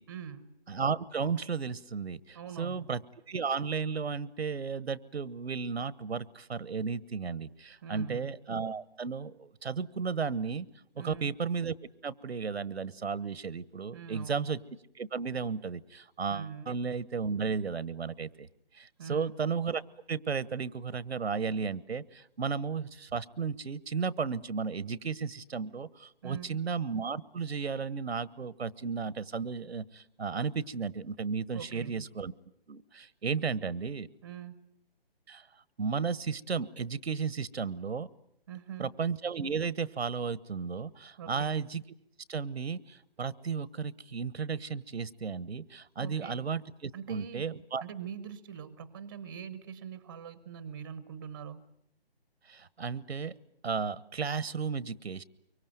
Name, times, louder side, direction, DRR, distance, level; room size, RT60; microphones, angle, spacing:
voice 1, 0.1-0.5 2.3-2.9 7.8-8.3 11.0-11.3 13.9-14.5 16.3-16.7 19.0-19.3 26.2-26.6 31.5-32.1 34.2-34.7 38.5-38.9 41.2-41.5 46.0-46.5 46.9-47.5 47.8-51.7, right 7 dB, 20° right, 16 dB, 1.0 m, -43 dB
voice 2, 0.7-3.0 3.3-10.7 11.0-11.7 12.0-14.6 14.9-18.5 18.7-19.8 20.1-32.3 32.7-34.1 35.3-35.5 35.8-38.1 38.8-41.8 42.3-47.8 52.5-53.3 53.6-55.2, right 5 dB, 90° right, 19 dB, 1.2 m, -34 dB
24.5 x 24.0 x 9.2 m, 0.72 s
hypercardioid pair, 170°, 31 cm